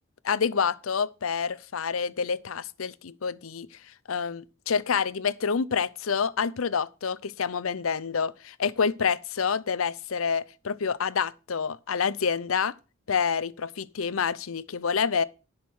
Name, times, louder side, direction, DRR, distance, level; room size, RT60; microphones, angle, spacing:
voice 1, 0.2-3.7 4.1-12.7 13.1-15.2, left 6 dB, 85° left, 0.6 m, -28 dB
10.5 x 6.5 x 6.3 m
head